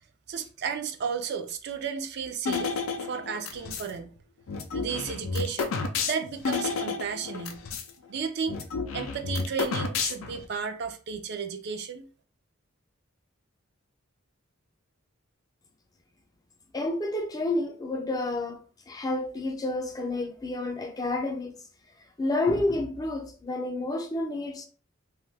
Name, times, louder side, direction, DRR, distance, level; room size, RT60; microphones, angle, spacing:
voice 1, 0.3-4.2 4.7-7.7 8.1-8.6 8.9-12.1, right 6 dB, 55° right, 0.4 m, -33 dB
sound 1, 2.4-3.9 4.5-7.9 8.2-8.3 8.5-10.4, left 4 dB, 85° left, 0.4 m, -31 dB
voice 2, 16.7-21.6 22.2-24.7, left 2 dB, 20° left, 0.3 m, -30 dB
2.6 x 2.3 x 3.2 m
head